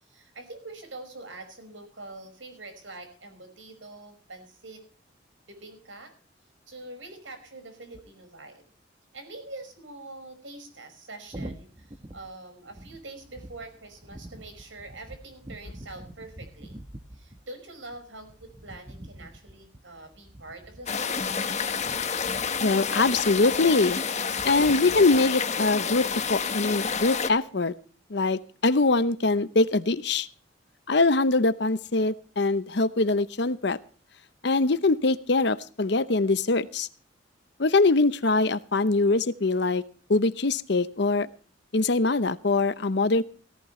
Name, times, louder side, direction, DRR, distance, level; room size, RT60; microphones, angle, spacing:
voice 1, 0.0-4.8 5.5-6.1 6.7-8.7 9.1-16.8 17.1-21.2, right 2 dB, 80° right, 7 dB, 5.5 m, -44 dB
sound 1, 11.3-25.2, right 1 dB, 25° right, 1.1 m, -46 dB
sound 2, 20.9-27.3, left 6 dB, 35° left, 1.3 m, -29 dB
voice 2, 22.6-24.0 24.4-27.7 28.1-30.3 30.9-33.8 34.4-36.9 37.6-39.8 40.1-41.3 41.7-43.2, left 3 dB, 60° left, 14 dB, 0.8 m, -23 dB
18.0 x 14.5 x 3.2 m, 0.40 s
head